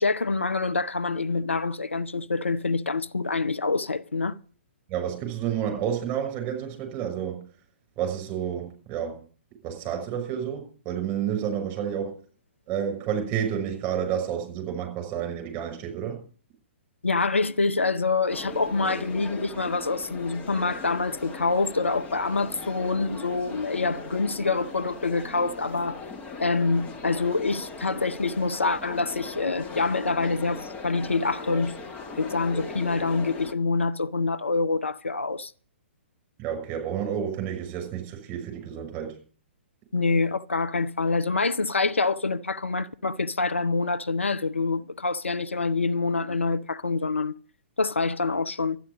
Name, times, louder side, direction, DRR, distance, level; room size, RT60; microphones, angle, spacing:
voice 1, 0.0-4.4 17.0-26.0 26.4-31.8 32.2-35.5 39.9-47.4 47.8-48.8, left 3 dB, 80° left, 0.6 m, -26 dB
voice 2, 4.9-7.4 8.0-9.2 9.6-12.1 12.7-16.2 36.4-39.1, right 9 dB, 25° right, 6.1 m, -30 dB
sound 1, 18.3-33.5, left 3 dB, 20° left, 1.3 m, -39 dB
13.0 x 9.9 x 7.2 m
figure-of-eight pair, 120°, 7 cm